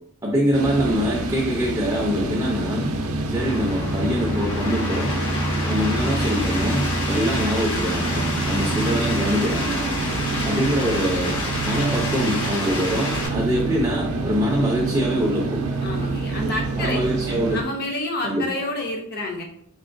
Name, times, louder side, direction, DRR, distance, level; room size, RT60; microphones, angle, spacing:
voice 1, 0.2-2.9 3.3-5.1 5.6-9.8 10.4-11.3 11.6-15.6 16.8-17.6 18.2-18.4, equal, 15° right, -2 dB, 0.4 m, -24 dB
sound 1, 0.5-17.6, right 2 dB, 70° right, 0.5 m, -27 dB
sound 2, 3.3-13.3, left 1 dB, 65° left, 1.0 m, -29 dB
voice 2, 15.8-17.0 17.5-19.4, left 2 dB, 45° left, 2 dB, 0.6 m, -28 dB
3.7 x 2.9 x 2.5 m, 0.66 s
head